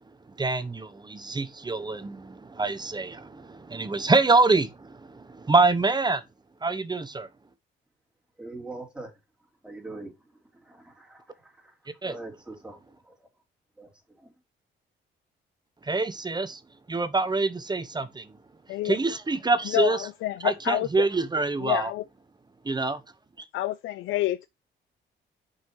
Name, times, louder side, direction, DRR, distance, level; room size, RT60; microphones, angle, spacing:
voice 1, 0.3-6.2 6.6-7.3 12.0-12.2 15.8-16.6 16.9-18.4 18.8-20.1 20.4-21.9 22.6-23.0 23.4-23.5, right 3 dB, 20° right, 0.8 m, -25 dB
voice 2, 8.4-9.1 9.6-10.1 10.6-11.7 12.0-12.8 13.0-13.1 13.8-13.9 14.2-14.3, right 2 dB, 5° right, 3.0 m, -42 dB
voice 3, 19.7-21.1 21.6-22.0 23.5-24.5, left 15 dB, 85° left, 0.4 m, -28 dB
6.0 x 5.6 x 4.4 m
cardioid pair, 90°, 20 cm